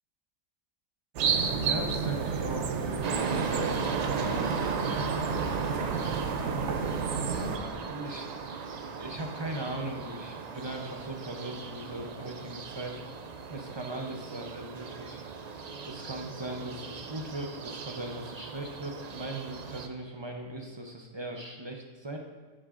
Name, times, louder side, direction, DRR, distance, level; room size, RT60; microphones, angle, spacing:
sound 1, 1.2-7.6, right 5 dB, 65° right, 0.9 m, -31 dB
voice 1, 1.6-4.9 6.7-8.3 9.0-13.0 13.5-15.2 15.8-22.2, right 1 dB, 30° right, 1 dB, 0.5 m, -39 dB
sound 2, 3.0-19.9, right 5 dB, 85° right, 0.3 m, -37 dB
11.0 x 8.9 x 2.5 m, 1.5 s
omnidirectional pair, 1.4 m